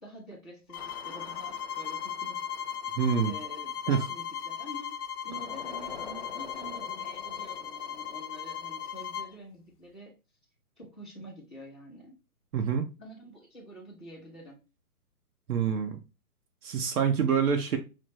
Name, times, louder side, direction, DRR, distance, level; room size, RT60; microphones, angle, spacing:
voice 1, 0.0-2.4 3.2-5.0 5.2-10.1 10.8-12.1 13.0-14.6, equal, 5° right, 0.6 m, -47 dB
sound 1, 0.7-9.3, left 8 dB, 80° left, 0.6 m, -37 dB
sound 2, 0.7-4.7 5.3-9.4, left 6 dB, 40° left, 0.6 m, -49 dB
voice 2, 3.0-3.3 3.9-4.0 12.5-12.9 15.5-16.0 16.6-17.8, right 7 dB, 75° right, 0.8 m, -26 dB
5.9 x 2.0 x 3.1 m
hypercardioid pair, 165°, 45 cm